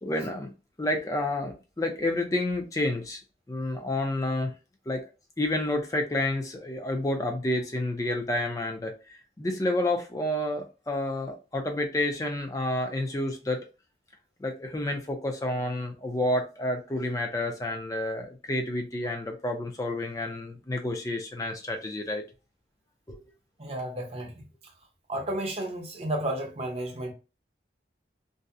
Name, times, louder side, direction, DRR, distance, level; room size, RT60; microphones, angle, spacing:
voice 1, 0.0-0.5 0.8-3.2 3.5-4.5 4.9-5.0 5.4-8.9 9.4-13.6 14.4-22.2 23.1-23.2, left 1 dB, 20° left, 0.4 m, -29 dB
voice 2, 23.6-24.3 25.1-27.1, right 1 dB, 35° right, 0.6 m, -32 dB
2.6 x 2.0 x 2.3 m
head